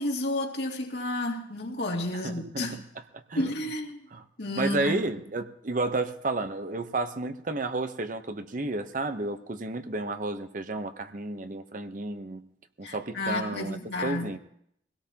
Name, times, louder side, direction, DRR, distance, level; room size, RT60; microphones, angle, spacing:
voice 1, 0.0-2.8 3.3-4.1 4.4-5.0 12.8-14.4, left 1 dB, 65° left, 2.4 m, -31 dB
voice 2, 2.2-2.8 3.1-3.4 4.1-4.2 4.5-12.4 12.8-14.4, right 2 dB, 45° right, 0.8 m, -32 dB
23.5 x 17.0 x 2.9 m
head